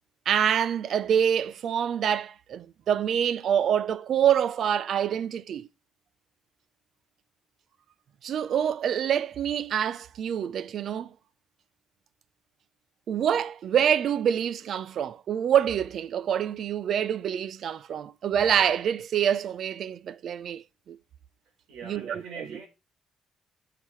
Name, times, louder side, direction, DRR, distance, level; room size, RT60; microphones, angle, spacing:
voice 1, 0.3-5.7 8.2-11.1 13.1-21.0 21.8-22.2, right 9 dB, 65° right, 0.5 m, -26 dB
voice 2, 21.7-22.7, right 5 dB, 90° right, 3.7 m, -42 dB
11.5 x 5.8 x 3.2 m
cardioid pair, 90°, 0 cm